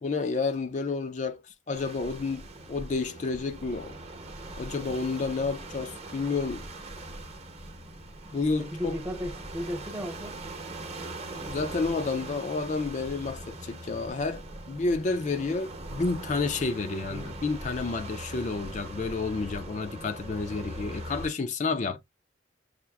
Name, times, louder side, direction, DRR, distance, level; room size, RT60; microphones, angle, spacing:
voice 1, 0.0-1.4 1.7-4.0 4.6-6.7 8.3-9.0 11.5-22.0, left 4 dB, 40° left, 0.4 m, -30 dB
sound 1, 1.7-21.3, right 1 dB, 35° right, 0.8 m, -41 dB
voice 2, 8.6-10.4 17.0-17.4 21.7-22.0, equal, 15° right, 0.5 m, -36 dB
5.7 x 2.4 x 2.2 m
head